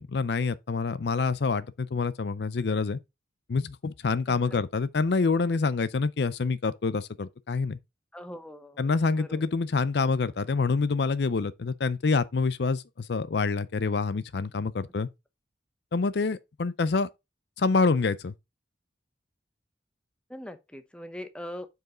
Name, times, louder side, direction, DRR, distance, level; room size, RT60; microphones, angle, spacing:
voice 1, 0.0-3.0 3.5-7.8 8.8-15.1 15.9-17.1 17.6-18.3, left 4 dB, 65° left, 0.5 m, -27 dB
voice 2, 4.3-4.6 8.1-9.5 20.3-21.7, left 1 dB, 5° left, 0.7 m, -42 dB
7.9 x 4.8 x 3.7 m
head